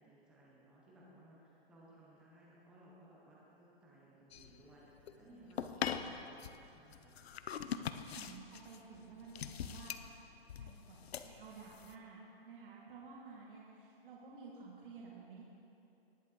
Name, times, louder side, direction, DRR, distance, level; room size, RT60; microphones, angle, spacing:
voice 1, 0.0-4.9 5.2-7.1, right 1 dB, 5° right, -6 dB, 0.5 m, -61 dB
sound 1, 4.3-11.9, left 8 dB, 85° left, 0.7 m, -43 dB
voice 2, 7.8-10.2 10.6-15.4, right 4 dB, 60° right, -4 dB, 1.9 m, -53 dB
19.5 x 6.7 x 3.7 m, 2.8 s
hypercardioid pair, 170°, 31 cm